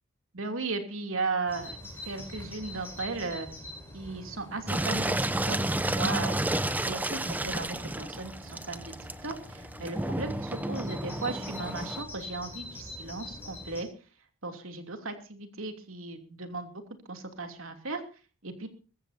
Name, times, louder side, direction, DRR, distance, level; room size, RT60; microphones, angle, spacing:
voice 1, 0.3-1.8 2.1-3.5 3.9-5.1 5.4-5.6 5.8-6.5 6.8-8.9 9.2-13.9 14.4-16.8 17.1-18.0 18.4-18.7, right 3 dB, 85° right, 5 dB, 2.9 m, -36 dB
Bird vocalization bird call bird song, 1.5-13.8, left 1 dB, 10° left, 5.4 m, -45 dB
Engine, 4.7-12.0, right 1 dB, 10° right, 0.6 m, -31 dB
22.5 x 15.0 x 2.7 m, 0.35 s
head